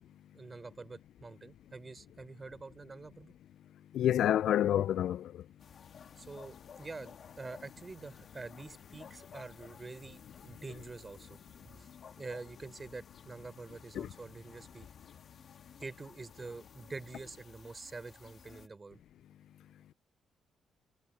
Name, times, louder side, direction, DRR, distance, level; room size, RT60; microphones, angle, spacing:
voice 1, 0.3-3.3 6.2-11.4 11.8-11.9 12.2-14.9 15.8-19.0, right 3 dB, 25° right, 3.7 m, -46 dB
voice 2, 3.9-5.3 14.0-14.1, left 11 dB, 75° left, 0.4 m, -28 dB
sound 1, 5.6-18.7, left 7 dB, 55° left, 2.2 m, -55 dB
cardioid pair, 90°, 0 cm